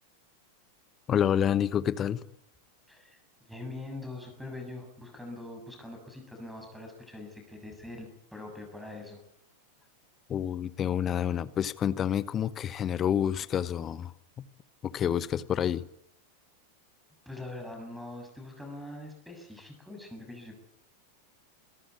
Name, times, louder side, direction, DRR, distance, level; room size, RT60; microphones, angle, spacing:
voice 1, 1.1-2.2 10.3-14.1 14.4-14.5 14.8-15.8, left 9 dB, 25° left, 1.0 m, -28 dB
voice 2, 2.9-3.2 3.5-9.2 17.3-20.6, left 2 dB, ahead, 7.2 m, -43 dB
26.5 x 13.5 x 8.5 m
figure-of-eight pair, 90°, 0 cm